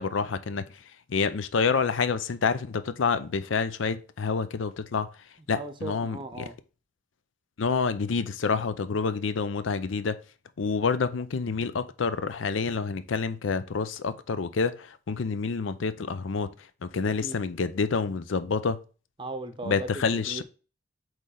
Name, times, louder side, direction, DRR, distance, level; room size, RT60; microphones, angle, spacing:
voice 1, 0.0-5.1 5.5-6.5 7.6-10.2 10.6-16.5 16.8-18.8 19.6-20.4, left 5 dB, 85° left, 0.5 m, -28 dB
voice 2, 5.5-6.5 17.2-17.4 19.2-20.4, right 2 dB, 25° right, 0.7 m, -37 dB
8.1 x 3.2 x 3.8 m
head